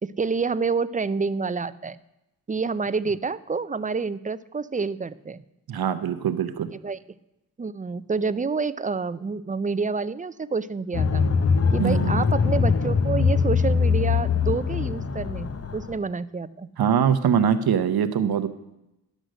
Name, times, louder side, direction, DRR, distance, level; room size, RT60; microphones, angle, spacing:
voice 1, 0.0-2.0 2.5-5.4 6.8-7.0 7.6-11.2 11.7-16.7, right 4 dB, 20° right, 16 dB, 0.4 m, -28 dB
voice 2, 5.7-6.7 11.8-12.3 16.8-18.5, right 8 dB, 85° right, 11 dB, 0.8 m, -23 dB
sound 1, 10.9-16.0, left 5 dB, 40° left, 0.7 m, -22 dB
11.5 x 6.3 x 6.3 m, 0.91 s
cardioid pair, 60°, 36 cm